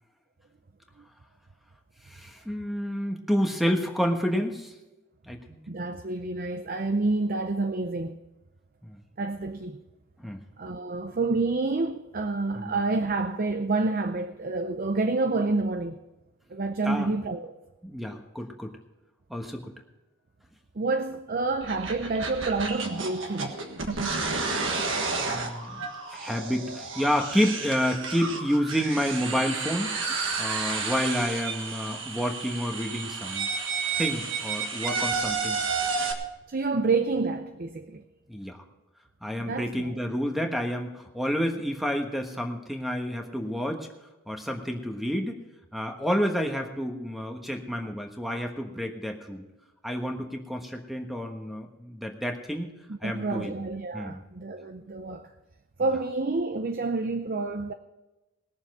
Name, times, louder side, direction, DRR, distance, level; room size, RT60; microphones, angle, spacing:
voice 1, 2.1-4.7 5.3-5.6 8.8-9.0 10.2-10.4 12.5-12.7 16.8-17.1 17.8-18.8 19.3-19.7 25.1-25.9 26.1-30.0 30.4-33.5 34.0-35.6 38.3-38.6 39.2-43.9 44.3-45.4 45.7-49.5 49.8-52.7 53.0-53.5 53.9-54.2, equal, ahead, 1.3 m, -29 dB
voice 2, 5.7-8.2 9.2-9.8 10.6-16.0 16.5-17.5 20.8-23.6 36.5-38.0 39.4-39.9 53.0-55.3 55.8-57.7, right 3 dB, 45° right, 0.6 m, -28 dB
sound 1, 21.6-36.1, right 4 dB, 60° right, 1.5 m, -31 dB
20.0 x 7.1 x 5.5 m
head